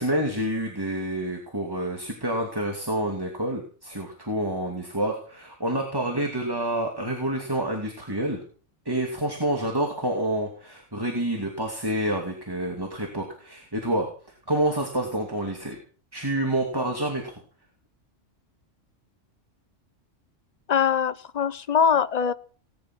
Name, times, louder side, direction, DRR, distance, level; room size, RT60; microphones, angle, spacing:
voice 1, 0.0-8.4 8.9-14.1 14.5-15.8 16.1-17.3, right 1 dB, 20° right, 1 dB, 2.6 m, -28 dB
voice 2, 20.7-22.3, left 7 dB, 40° left, 14 dB, 0.8 m, -22 dB
19.0 x 11.0 x 6.2 m, 0.43 s
omnidirectional pair, 1.3 m